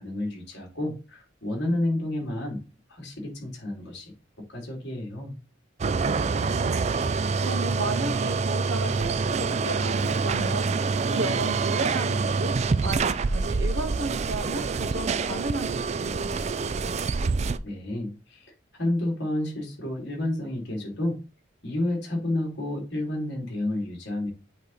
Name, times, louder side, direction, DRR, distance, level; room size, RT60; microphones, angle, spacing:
voice 1, 0.0-2.6 2.9-4.1 4.5-5.4 17.6-18.5 18.8-21.2 21.6-24.3, left 1 dB, 60° left, 2.8 m, -30 dB
sound 1, 5.8-17.6, right 4 dB, 35° right, 0.3 m, -26 dB
voice 2, 6.1-16.4, right 2 dB, 70° right, 1.2 m, -34 dB
8.3 x 3.1 x 4.1 m
head